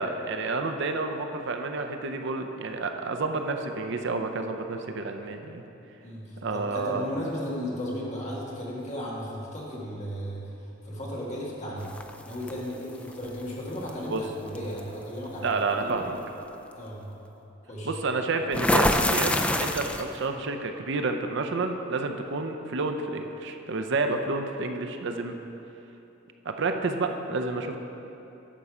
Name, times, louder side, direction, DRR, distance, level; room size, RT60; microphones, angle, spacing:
voice 1, 0.0-5.6 6.4-7.0 14.1-14.2 15.4-16.2 17.8-19.3 19.6-25.4 26.4-27.8, right 3 dB, 60° right, 6 dB, 0.6 m, -29 dB
voice 2, 6.0-10.5 10.8-11.9 12.2-15.5 15.8-16.1 16.7-17.1 17.7-18.0, equal, 35° left, -5 dB, 2.0 m, -35 dB
sound 1, 11.9-12.5 13.9-14.1 14.5-14.8 18.5-20.2, left 1 dB, 5° left, 0.3 m, -24 dB
11.5 x 6.8 x 4.9 m, 2.9 s
head